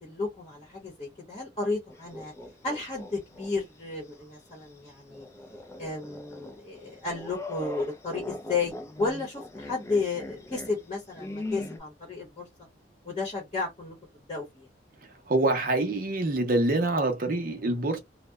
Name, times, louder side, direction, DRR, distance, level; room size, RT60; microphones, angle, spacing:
voice 1, 0.0-2.3 2.6-5.3 5.8-8.7 9.0-12.5 13.0-14.0 14.3-14.7, left 3 dB, 30° left, 0.8 m, -33 dB
sound 1, 1.9-3.5 3.9-4.0 5.1-11.8, left 2 dB, 15° left, 0.3 m, -40 dB
voice 2, 15.3-18.0, right 2 dB, 50° right, 0.6 m, -25 dB
2.7 x 2.0 x 2.2 m
head